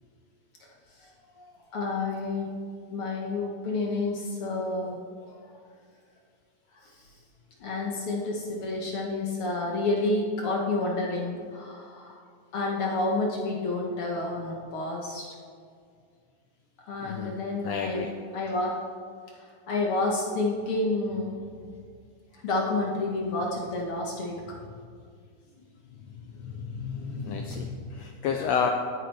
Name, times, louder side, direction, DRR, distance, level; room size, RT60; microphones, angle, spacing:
voice 1, 1.7-2.6 2.9-5.0 6.8-6.9 7.6-12.2 12.5-15.3 16.9-18.0 18.3-18.8 19.7-21.4 22.4-24.6 25.9-26.0 26.3-27.8, left 2 dB, 55° left, -2 dB, 1.6 m, -30 dB
voice 2, 17.0-17.4 17.6-18.1 27.3-28.7, left 7 dB, 90° left, 4 dB, 1.5 m, -30 dB
17.0 x 9.6 x 3.4 m, 2.1 s
omnidirectional pair, 3.6 m